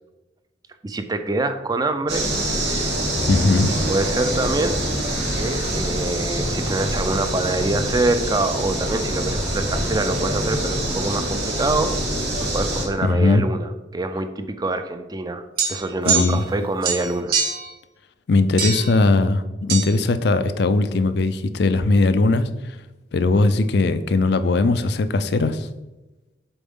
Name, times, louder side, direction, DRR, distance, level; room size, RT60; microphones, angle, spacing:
voice 1, 0.8-2.3 2.5-3.0 3.9-4.8 5.3-11.9 12.4-17.4, right 2 dB, 20° right, 9 dB, 0.4 m, -25 dB
sound 1, 2.1-12.9, right 1 dB, 70° right, 2.3 m, -25 dB
voice 2, 3.2-3.7 12.8-13.4 16.1-16.4 18.3-22.8 23.1-25.7, left 3 dB, 60° left, 11 dB, 0.4 m, -19 dB
sound 2, 15.6-16.5 16.8-17.7 18.6-19.0 19.7-19.9, right 5 dB, 50° right, 1.2 m, -24 dB
7.0 x 4.3 x 3.6 m, 1.1 s
head